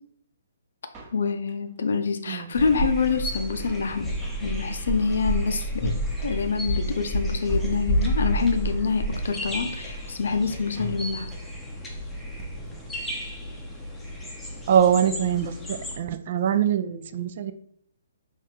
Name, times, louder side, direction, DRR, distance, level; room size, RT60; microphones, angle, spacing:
Drum kit, 0.9-1.8 2.0-2.1 2.3-3.4 3.7-3.8 3.9-4.5 4.8-5.0 5.3-5.4 5.6-5.7 5.8-6.7 6.9-7.0 7.2-7.8 8.0-8.3 8.6-8.7 8.9-9.0 9.1-10.0 10.2-10.3 10.5-11.0 11.3-11.6 11.8-11.9 12.1-12.2 12.4-13.2 13.5-13.6 13.8-13.9, right 3 dB, 25° right, 0.8 m, -43 dB
voice 1, 1.1-4.1 4.4-5.9 6.2-11.3, left 5 dB, 60° left, 7 dB, 0.6 m, -26 dB
sound 1, 2.5-16.0, equal, 5° left, 0.7 m, -30 dB
voice 2, 14.7-17.5, right 9 dB, 45° right, 10 dB, 0.3 m, -23 dB
4.2 x 2.5 x 3.3 m, 0.63 s
figure-of-eight pair, 130°, 0 cm